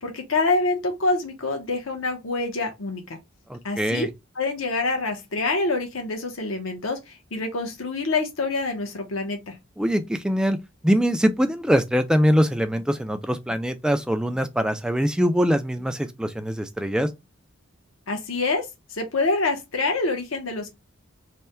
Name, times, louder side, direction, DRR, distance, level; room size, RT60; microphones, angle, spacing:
voice 1, 0.0-3.2 3.6-4.1 4.4-9.6 18.1-20.7, left 3 dB, 65° left, 0.9 m, -26 dB
voice 2, 3.5-4.1 9.8-10.6 10.8-17.1, equal, 5° right, 0.3 m, -23 dB
3.4 x 2.2 x 4.2 m
head